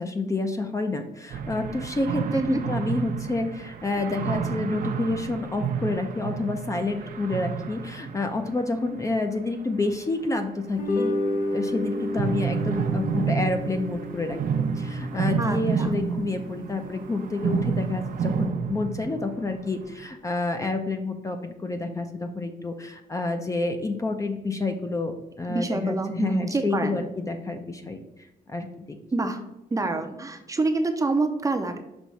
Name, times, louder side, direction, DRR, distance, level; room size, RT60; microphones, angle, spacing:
voice 1, 0.0-11.1 11.5-28.0 28.5-29.0, left 2 dB, 20° left, 6 dB, 0.6 m, -29 dB
sound 1, 1.3-9.5 11.3-20.1, right 6 dB, 60° right, 0.7 m, -30 dB
sound 2, 10.7-17.2, left 1 dB, 55° left, 0.8 m, -32 dB
voice 2, 15.4-15.9 25.5-27.0 29.1-29.4 29.7-31.8, right 3 dB, 20° right, 5 dB, 0.6 m, -27 dB
6.1 x 3.0 x 5.5 m, 0.91 s
cardioid pair, 120°, 16 cm